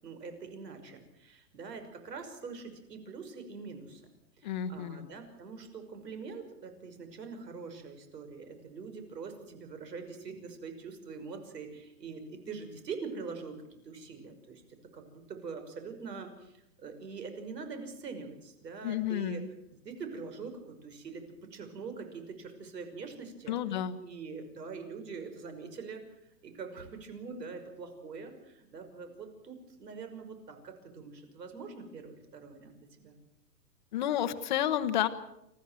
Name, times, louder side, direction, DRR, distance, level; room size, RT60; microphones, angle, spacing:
voice 1, 0.0-4.0 4.4-14.6 14.9-23.6 24.0-33.2, right 5 dB, 75° right, 7 dB, 5.9 m, -44 dB
voice 2, 4.4-5.1 18.8-19.5 23.5-24.0 33.9-35.1, left 10 dB, 30° left, 9 dB, 1.1 m, -31 dB
29.0 x 14.5 x 7.7 m, 0.83 s
hypercardioid pair, 170°, 50 cm